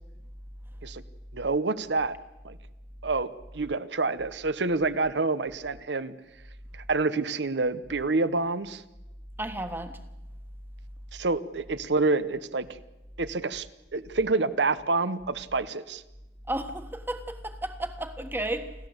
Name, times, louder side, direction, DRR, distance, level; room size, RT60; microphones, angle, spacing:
voice 1, 1.3-2.2 2.4-2.6 3.0-6.1 6.7-8.8 11.1-12.7 13.2-13.7 13.9-16.0, right 3 dB, 75° right, 1.0 m, -27 dB
voice 2, 9.4-10.0 16.5-18.7, right 1 dB, 10° right, 1.4 m, -33 dB
29.0 x 12.5 x 7.9 m
head